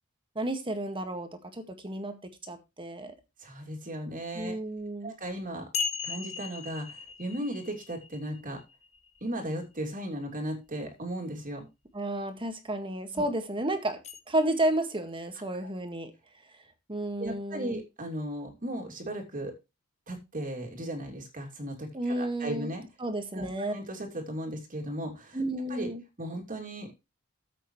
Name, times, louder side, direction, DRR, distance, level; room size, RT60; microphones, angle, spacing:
voice 1, 0.4-3.1 4.4-5.1 11.9-14.0 14.3-16.1 16.9-17.8 21.9-22.7 23.0-23.7 25.3-26.0, right 1 dB, 25° right, 7 dB, 1.8 m, -32 dB
voice 2, 3.4-4.6 5.0-5.7 6.0-8.6 9.2-11.7 13.1-13.2 15.5-15.6 17.2-19.5 20.1-22.8 23.3-25.4 25.7-25.9 26.2-26.9, right 1 dB, 40° right, 1 dB, 2.9 m, -36 dB
sound 1, 4.8-4.9 5.7-9.4 14.0-14.2, left 5 dB, 30° left, 1.4 m, -37 dB
13.5 x 8.1 x 3.2 m, 0.25 s
head